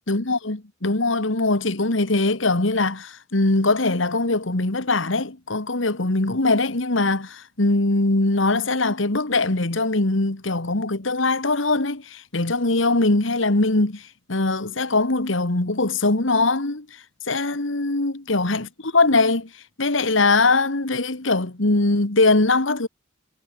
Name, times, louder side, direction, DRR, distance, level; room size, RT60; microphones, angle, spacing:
voice 1, 0.1-19.5 19.8-22.9, left 2 dB, 70° left, 1.8 m, -21 dB
head